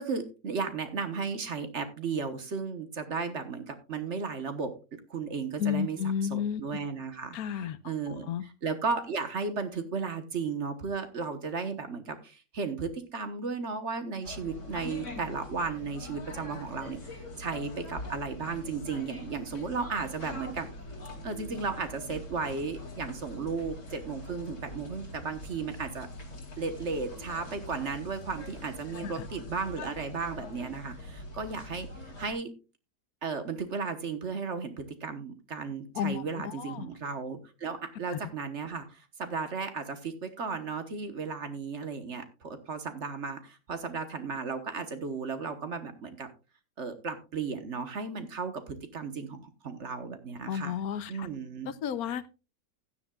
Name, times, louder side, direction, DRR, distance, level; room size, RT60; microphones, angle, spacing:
voice 1, 0.0-4.8 5.1-20.7 21.2-26.1 26.6-32.5 33.2-46.3 46.8-50.8 51.1-51.7, right 5 dB, 45° right, 9 dB, 1.4 m, -35 dB
voice 2, 5.6-6.6 7.3-8.4 29.0-29.3 35.9-36.9 38.1-38.2 50.5-51.3 51.6-52.3, left 8 dB, 65° left, 15 dB, 1.1 m, -32 dB
sound 1, 14.2-32.3, left 1 dB, 85° left, 3.0 m, -43 dB
15.5 x 10.5 x 2.4 m, 0.30 s
omnidirectional pair, 1.8 m